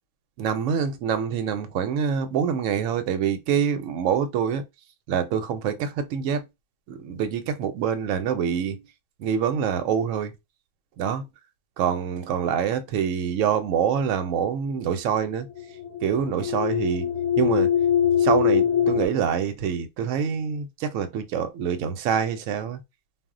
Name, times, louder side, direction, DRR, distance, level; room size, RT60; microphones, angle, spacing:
voice 1, 0.4-4.6 5.1-6.4 7.0-8.8 9.2-10.3 11.0-11.2 11.8-15.5 16.0-17.1 17.4-17.7 18.2-22.8, right 7 dB, 75° right, 0.9 m, -25 dB
sound 1, 15.1-19.1, left 9 dB, 80° left, 1.0 m, -23 dB
2.3 x 2.1 x 3.6 m
omnidirectional pair, 1.4 m